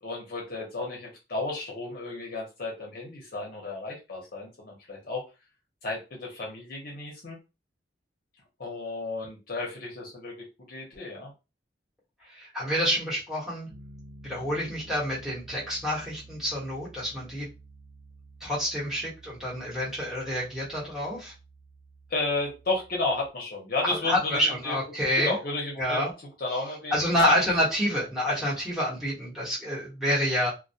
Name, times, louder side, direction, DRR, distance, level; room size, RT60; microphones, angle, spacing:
voice 1, 0.0-5.2 5.8-7.4 8.6-11.3 22.1-24.8 25.1-26.0 26.4-27.3, left 2 dB, 50° left, -2 dB, 0.7 m, -33 dB
voice 2, 12.3-13.7 14.2-17.5 18.4-21.3 23.8-25.4 25.8-26.1 26.9-30.5, equal, 5° right, -7 dB, 1.0 m, -28 dB
Piano, 13.7-23.3, right 2 dB, 50° right, 0.6 m, -51 dB
2.2 x 2.1 x 2.7 m, 0.28 s
head